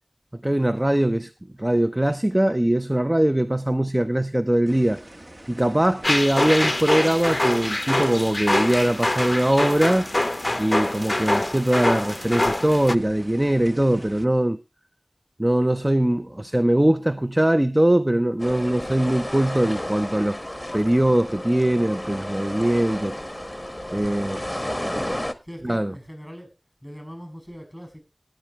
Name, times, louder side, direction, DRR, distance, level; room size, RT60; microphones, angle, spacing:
voice 1, 0.3-1.3 1.6-5.0 5.5-10.1 10.6-14.6 15.4-20.4 20.7-23.1 23.9-24.4 25.6-25.9, right 1 dB, 25° right, 0.6 m, -21 dB
sound 1, 4.7-14.3, right 1 dB, 40° right, 1.2 m, -44 dB
sound 2, 6.0-13.0, left 1 dB, 40° left, 0.6 m, -24 dB
sound 3, 18.4-25.3, left 1 dB, 10° left, 1.3 m, -32 dB
voice 2, 23.9-25.1 25.4-28.0, equal, 5° right, 7.3 m, -42 dB
19.5 x 9.0 x 3.0 m
wide cardioid pair, 45°, 0 cm